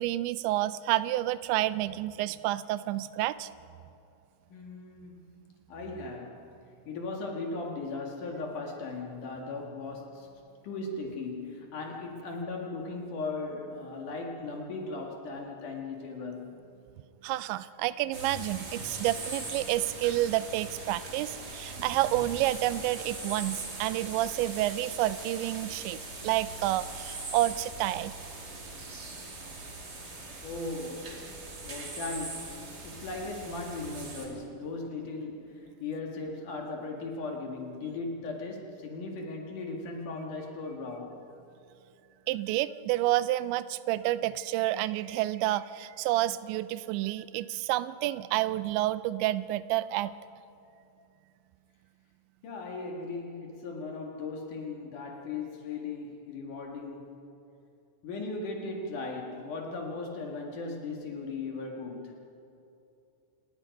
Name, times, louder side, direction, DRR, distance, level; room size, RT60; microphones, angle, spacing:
voice 1, 0.0-3.5 17.2-28.1 42.3-50.1, right 15 dB, 90° right, 16 dB, 2.9 m, -29 dB
voice 2, 4.5-5.3 5.7-6.5 6.9-10.3 10.6-16.5 30.4-31.3 31.6-32.5 32.8-41.2 52.4-57.2 58.0-62.3, left 3 dB, 55° left, 1 dB, 2.9 m, -37 dB
sound 1, 18.1-34.3, right 2 dB, 30° right, 2.2 m, -41 dB
28.0 x 18.5 x 5.3 m, 2.7 s
omnidirectional pair, 5.1 m